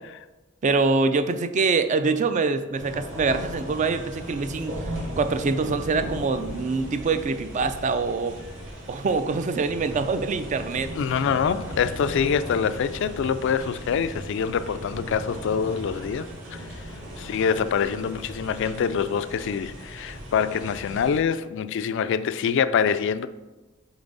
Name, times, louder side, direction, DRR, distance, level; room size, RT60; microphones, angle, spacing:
voice 1, 0.6-4.8 5.2-8.3 8.9-10.9, right 4 dB, 35° right, 0.4 m, -24 dB
sound 1, 2.7-21.2, equal, 65° right, 1.7 m, -37 dB
voice 2, 11.0-16.8 17.2-23.3, left 7 dB, 65° left, 0.3 m, -25 dB
7.0 x 4.0 x 3.9 m
head